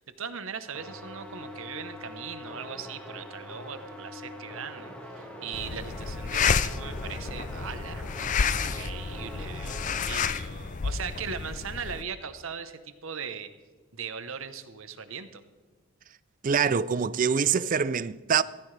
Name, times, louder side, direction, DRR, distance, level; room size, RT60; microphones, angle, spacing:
voice 1, 0.0-8.3 8.6-13.5 13.9-15.4, right 6 dB, 65° right, 0.9 m, -39 dB
sound 1, 0.7-10.3, left 1 dB, 5° left, 1.6 m, -43 dB
sound 2, 5.5-12.0, left 6 dB, 35° left, 0.4 m, -30 dB
voice 2, 16.4-18.4, right 6 dB, 35° right, 0.4 m, -24 dB
16.5 x 15.0 x 3.3 m
head